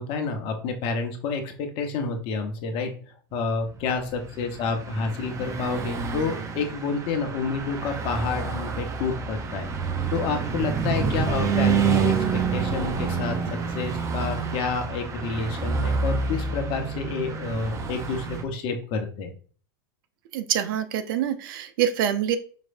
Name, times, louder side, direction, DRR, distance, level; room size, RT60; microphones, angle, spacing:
voice 1, 0.0-2.9 3.3-9.7 10.1-13.4 13.7-19.3, left 4 dB, 50° left, 5 dB, 1.0 m, -29 dB
Car passing by / Truck, 4.0-18.4, right 5 dB, 25° right, 0.6 m, -28 dB
voice 2, 20.3-22.4, right 10 dB, 65° right, 10 dB, 0.6 m, -25 dB
5.2 x 3.2 x 2.6 m, 0.41 s
hypercardioid pair, 110°, 12 cm